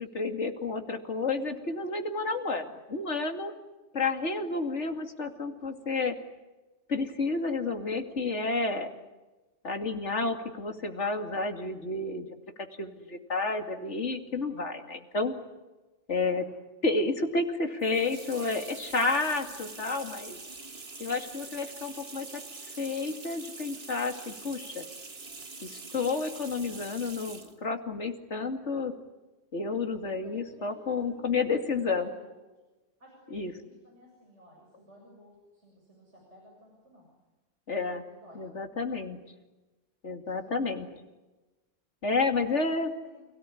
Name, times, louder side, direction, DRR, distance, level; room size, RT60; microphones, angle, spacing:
voice 1, 0.0-3.5 3.9-6.1 6.9-8.9 9.6-12.3 12.8-15.3 16.1-16.4 16.8-20.4 21.0-22.3 22.8-24.8 25.6-28.9 29.5-32.1 33.3-33.5 37.7-38.0 38.4-39.2 40.0-40.9 42.0-42.9, left 3 dB, 75° left, 5 dB, 2.8 m, -30 dB
sound 1, 17.8-27.6, right 3 dB, 55° right, 2.2 m, -44 dB
voice 2, 30.2-31.4 31.7-32.4 33.0-37.1 38.1-38.4 40.2-40.9 42.0-42.6 43.0-43.3, equal, 70° right, -2 dB, 7.8 m, -55 dB
29.5 x 18.0 x 9.9 m, 1.1 s
omnidirectional pair, 1.2 m